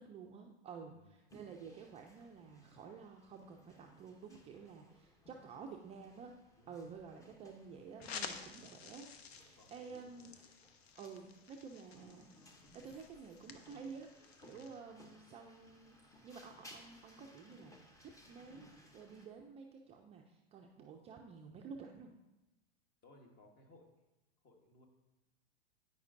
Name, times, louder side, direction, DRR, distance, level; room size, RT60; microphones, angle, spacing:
voice 1, 0.0-6.4 6.7-9.1 9.4-10.3 11.0-16.0 16.2-17.7 18.0-18.7 18.9-22.1, right 5 dB, 20° right, 2 dB, 0.4 m, -51 dB
voice 2, 0.7-1.1 6.5-6.9 9.5-10.3 14.4-14.7 23.0-23.9 24.4-24.9, left 1 dB, 30° left, 2 dB, 1.2 m, -63 dB
sound 1, 1.3-19.3, left 1 dB, 10° left, 0.7 m, -62 dB
sound 2, 8.0-14.8, left 6 dB, 75° left, 0.7 m, -51 dB
9.2 x 5.2 x 2.5 m, 0.99 s
hypercardioid pair, 110°, 32 cm